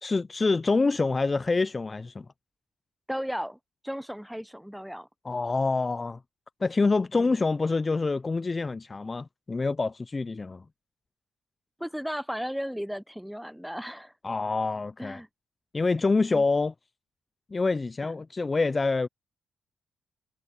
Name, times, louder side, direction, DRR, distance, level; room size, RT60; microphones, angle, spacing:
voice 1, 0.0-2.3 5.2-6.2 6.6-10.6 14.2-15.2 15.7-16.7 17.5-19.1, left 3 dB, 30° left, 0.6 m, -26 dB
voice 2, 3.1-3.6 3.8-5.1 7.1-7.3 11.8-14.1 15.0-15.3 16.3-16.4 18.0-18.1, equal, ahead, 1.0 m, -35 dB
supercardioid pair, 55°, 0 cm